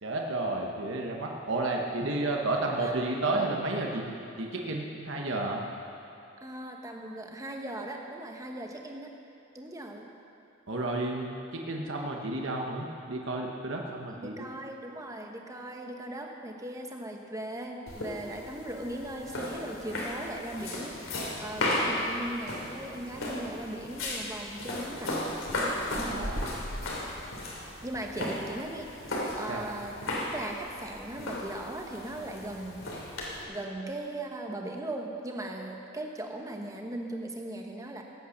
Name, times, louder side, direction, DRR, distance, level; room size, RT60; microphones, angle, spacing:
voice 1, 0.0-4.1 4.4-5.6 10.7-14.4 26.1-26.5 28.2-28.3 29.5-29.7, right 2 dB, 65° right, 0 dB, 1.3 m, -32 dB
voice 2, 6.4-9.1 9.5-10.1 14.1-21.0 21.4-25.3 25.9-26.5 27.8-30.0 30.3-32.9 33.5-38.0, right 1 dB, 15° right, 2 dB, 1.1 m, -39 dB
sound 1, 17.9-33.4, left 1 dB, 80° left, 2.9 m, -35 dB
17.0 x 8.6 x 6.6 m, 2.7 s
head